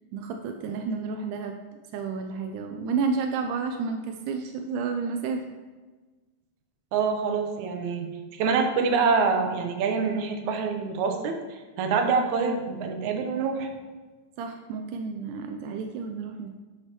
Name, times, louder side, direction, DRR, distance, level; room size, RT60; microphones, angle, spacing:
voice 1, 0.1-1.6 1.9-5.4 14.4-16.5, right 5 dB, 85° right, 5 dB, 1.9 m, -31 dB
voice 2, 6.9-8.1 8.3-13.7, right 5 dB, 70° right, 4 dB, 2.0 m, -26 dB
10.0 x 10.0 x 3.0 m, 1.3 s
omnidirectional pair, 4.2 m